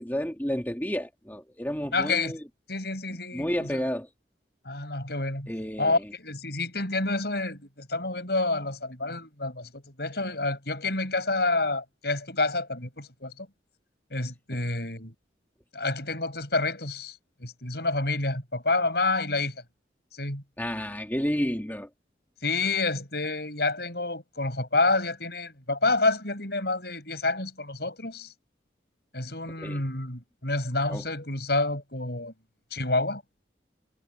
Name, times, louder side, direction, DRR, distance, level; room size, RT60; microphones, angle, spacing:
voice 1, 0.0-2.4 3.3-4.1 5.5-6.1 20.6-21.9 29.6-29.9 30.9-31.0, equal, 10° left, 2.4 m, -31 dB
voice 2, 1.9-2.3 2.7-3.8 4.6-5.5 5.8-13.5 14.1-15.1 15.7-19.6 20.1-20.4 22.4-28.3 29.1-32.3 32.7-33.2, left 3 dB, 60° left, 7.8 m, -28 dB
head